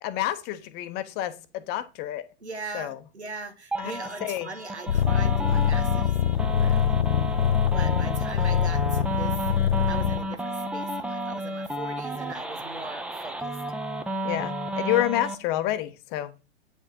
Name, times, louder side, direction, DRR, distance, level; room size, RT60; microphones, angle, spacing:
voice 1, 0.0-2.2 2.7-3.0 3.8-3.9 4.2-4.5 14.2-16.3, left 14 dB, 30° left, 0.8 m, -29 dB
voice 2, 2.4-7.0 7.6-9.4 9.8-13.6, right 3 dB, 85° right, 1.6 m, -40 dB
sound 1, 3.7-15.3, right 1 dB, 5° right, 0.6 m, -32 dB
sound 2, 4.9-10.2, left 9 dB, 65° left, 1.2 m, -24 dB
8.7 x 4.9 x 4.3 m
figure-of-eight pair, 100°, 33 cm